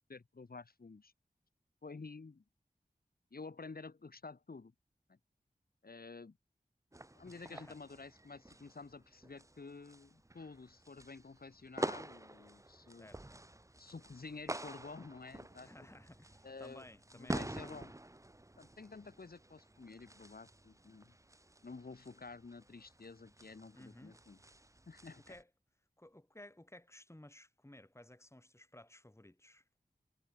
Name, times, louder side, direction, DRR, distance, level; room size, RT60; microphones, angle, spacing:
voice 1, 0.1-1.1 1.8-2.4 3.3-4.7 5.1-5.2 5.8-6.4 7.2-13.1 13.8-15.7 16.4-16.9 17.1-17.9 18.6-21.1 21.6-24.4 24.9-25.2, left 4 dB, 75° left, 6.9 m, -50 dB
sound 1, 6.9-25.4, right 1 dB, 20° right, 1.5 m, -48 dB
voice 2, 7.2-7.8 13.0-13.2 15.6-17.7 23.7-24.2 25.3-25.5 26.0-29.6, left 1 dB, 15° left, 4.4 m, -56 dB
wide cardioid pair, 50°, 16 cm